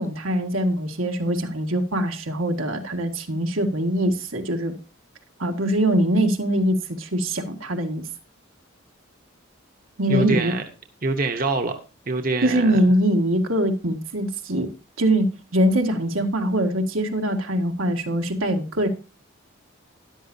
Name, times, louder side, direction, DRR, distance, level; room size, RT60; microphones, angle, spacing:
voice 1, 0.0-4.7 5.4-8.0 10.0-10.5 12.4-14.7 15.0-18.9, right 1 dB, 85° right, 3 dB, 1.8 m, -23 dB
voice 2, 10.1-10.6 11.0-11.8 12.1-12.8, right 3 dB, 45° right, 5 dB, 1.0 m, -24 dB
13.0 x 11.0 x 2.7 m, 0.31 s
head